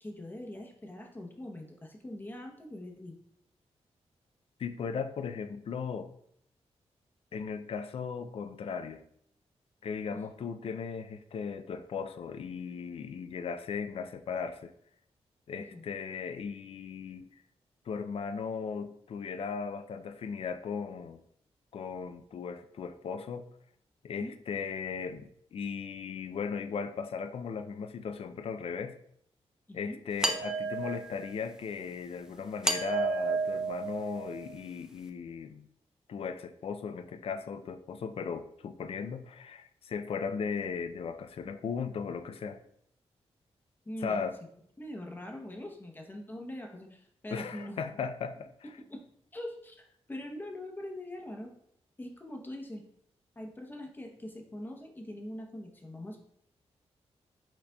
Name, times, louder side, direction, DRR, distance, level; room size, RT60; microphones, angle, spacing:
voice 1, 0.0-3.2 15.7-15.8 24.2-24.3 29.7-30.0 43.9-44.2 44.8-48.0 48.8-49.0 49.3-51.5 52.0-52.8 53.4-56.2, left 1 dB, 15° left, 1 dB, 0.7 m, -42 dB
voice 2, 4.6-6.1 7.3-9.0 9.8-14.7 15.5-17.3 17.9-21.2 21.7-23.5 24.0-29.0 29.7-35.7 36.1-42.6 44.0-44.4 47.3-48.7, left 6 dB, 60° left, 10 dB, 0.4 m, -37 dB
sound 1, 30.2-31.3 32.6-34.5, right 3 dB, 5° right, 0.4 m, -32 dB
5.8 x 4.0 x 2.2 m, 0.72 s
wide cardioid pair, 125°, 11 cm